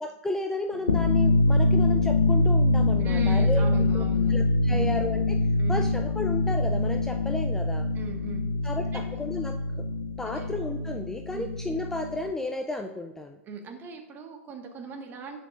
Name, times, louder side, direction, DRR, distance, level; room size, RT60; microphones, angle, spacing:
voice 1, 0.0-3.7 3.9-4.0 4.3-5.4 5.7-7.9 8.6-9.6 10.2-13.4, left 2 dB, 5° left, 5 dB, 0.5 m, -33 dB
sound 1, 0.8-12.3, left 2 dB, 80° left, 0.7 m, -24 dB
voice 2, 3.0-4.3 4.7-4.9 5.6-5.8 7.9-9.0 10.2-10.6 11.3-11.5 13.5-15.4, right 5 dB, 25° right, 3 dB, 1.6 m, -40 dB
18.0 x 6.1 x 2.5 m, 0.96 s
figure-of-eight pair, 105°, 8 cm